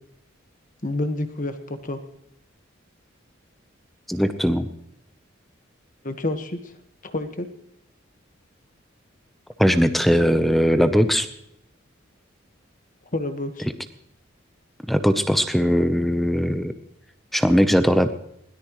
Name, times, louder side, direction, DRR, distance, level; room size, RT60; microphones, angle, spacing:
voice 1, 0.8-2.0 6.0-6.6 7.0-7.5 13.1-13.7, left 2 dB, 40° left, 7 dB, 1.5 m, -28 dB
voice 2, 4.1-4.7 9.6-11.3 14.9-16.7 17.3-18.1, equal, ahead, 9 dB, 0.8 m, -19 dB
22.0 x 17.5 x 3.2 m, 0.75 s
head